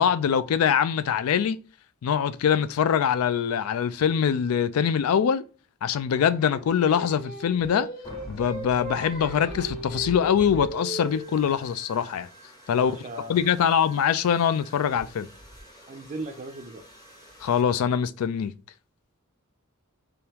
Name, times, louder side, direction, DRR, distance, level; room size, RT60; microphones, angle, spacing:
voice 1, 0.0-1.6 2.0-5.4 5.8-7.9 8.3-12.3 12.7-12.9 13.3-15.3 17.4-18.5, left 8 dB, 80° left, 0.3 m, -23 dB
Singing, 6.4-11.6, right 1 dB, 45° left, 1.6 m, -38 dB
sound 1, 8.0-17.6, right 1 dB, 20° left, 0.8 m, -46 dB
voice 2, 12.7-13.7 15.9-16.8, right 2 dB, 35° right, 0.4 m, -38 dB
3.5 x 3.4 x 2.8 m
head